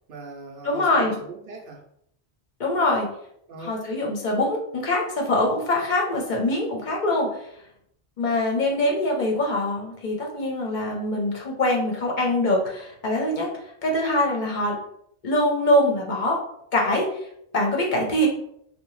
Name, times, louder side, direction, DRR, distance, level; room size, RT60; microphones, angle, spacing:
voice 1, 0.1-1.8 3.5-3.9, right 3 dB, 65° right, 0 dB, 0.7 m, -39 dB
voice 2, 0.6-1.2 2.6-3.1 3.6-7.3 8.2-13.5 13.8-14.8 15.2-16.4 16.7-17.2 17.5-18.3, left 1 dB, 55° left, -1 dB, 0.7 m, -23 dB
2.7 x 2.1 x 3.0 m, 0.72 s
omnidirectional pair, 1.1 m